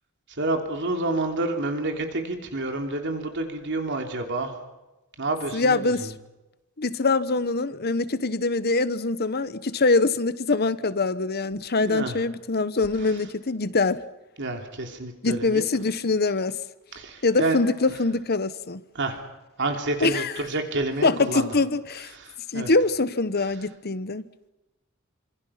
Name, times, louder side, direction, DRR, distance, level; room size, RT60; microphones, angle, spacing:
voice 1, 0.3-4.6 5.2-6.1 11.8-12.2 13.0-13.2 14.4-15.6 16.9-17.6 18.9-19.2 19.6-21.5 22.1-22.7, right 2 dB, 55° right, 3.1 m, -29 dB
voice 2, 5.5-6.1 6.8-14.0 15.2-16.6 17.2-18.8 20.0-20.3 21.0-22.1 22.5-24.2, left 3 dB, 50° left, 1.0 m, -24 dB
27.0 x 26.5 x 5.9 m
head